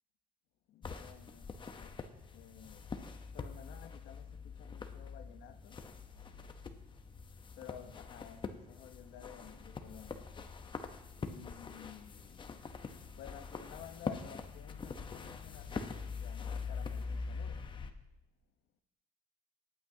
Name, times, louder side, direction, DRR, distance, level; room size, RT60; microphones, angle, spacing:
voice 1, 0.7-2.0 2.3-5.8 7.5-10.3 11.2-12.5 13.2-17.7, left 9 dB, 80° left, 0.9 m, -53 dB
sound 1, 0.8-17.9, left 5 dB, 30° left, 0.8 m, -44 dB
18.0 x 8.9 x 2.8 m
cardioid pair, 110°, 17 cm